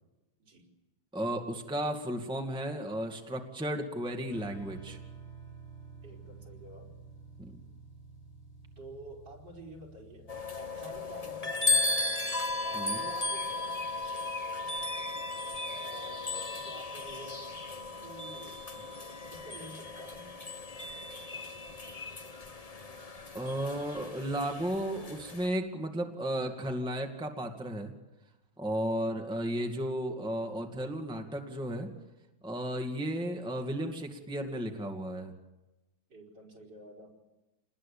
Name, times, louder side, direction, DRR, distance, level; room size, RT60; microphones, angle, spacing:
voice 1, 1.1-5.0 7.4-7.6 12.7-13.0 23.3-27.9 28.6-31.9 32.4-35.3, right 1 dB, ahead, 3 dB, 2.0 m, -34 dB
sound 1, 4.3-11.3, right 4 dB, 70° left, 4.7 m, -50 dB
voice 2, 6.0-7.0 8.8-12.2 12.6-13.9 15.8-18.6 19.3-20.3 28.9-29.2 36.1-37.1, right 1 dB, 60° right, 0 dB, 5.4 m, -50 dB
sound 2, 10.3-25.5, left 3 dB, 25° left, 1.1 m, -35 dB
28.5 x 20.5 x 8.6 m, 1.0 s
omnidirectional pair, 2.1 m